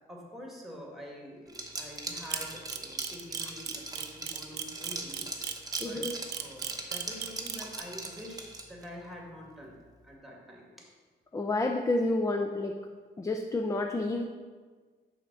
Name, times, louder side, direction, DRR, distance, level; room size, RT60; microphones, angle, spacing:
voice 1, 0.1-5.6 5.8-6.1 6.4-10.9, equal, ahead, -2 dB, 1.9 m, -46 dB
Liquid, 1.5-8.9, right 2 dB, 20° right, 1.0 m, -40 dB
Camera, 2.3-7.8, right 9 dB, 60° right, 0.6 m, -35 dB
voice 2, 5.8-6.1 11.3-12.7 13.2-14.2, left 2 dB, 15° left, 4 dB, 0.5 m, -29 dB
5.7 x 4.2 x 6.1 m, 1.5 s
cardioid pair, 90°, 20 cm